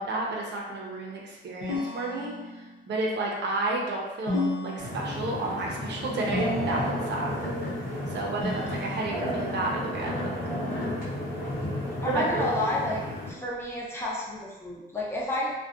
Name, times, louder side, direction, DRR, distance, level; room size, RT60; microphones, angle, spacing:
voice 1, 0.0-7.3 8.1-10.4 12.0-12.5, right 2 dB, 60° right, -2 dB, 0.6 m, -31 dB
sound 1, 1.6-2.8 4.3-5.4 6.3-7.2 8.4-9.4, left 2 dB, 80° left, 0.7 m, -33 dB
sound 2, 4.8-13.3, left 1 dB, 45° left, 0.9 m, -32 dB
voice 2, 12.0-13.0 13.3-15.5, left 1 dB, 10° left, -5 dB, 0.6 m, -30 dB
2.5 x 2.2 x 2.4 m, 1.1 s
cardioid pair, 90°, 20 cm